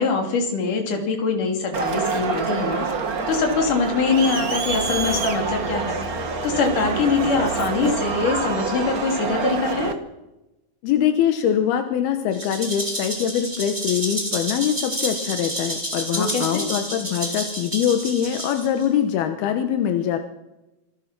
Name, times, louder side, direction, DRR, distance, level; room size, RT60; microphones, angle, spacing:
voice 1, 0.0-2.9 3.3-6.0 6.4-10.0 16.1-16.7, left 4 dB, 55° left, 3 dB, 4.5 m, -23 dB
Crowd, 1.7-9.9, right 4 dB, 60° right, 0.9 m, -26 dB
voice 2, 10.8-20.2, left 9 dB, 85° left, 7 dB, 3.1 m, -23 dB
Rattle (instrument), 12.3-18.8, right 1 dB, 10° right, 4.8 m, -30 dB
27.0 x 20.0 x 6.1 m, 1.0 s
omnidirectional pair, 4.3 m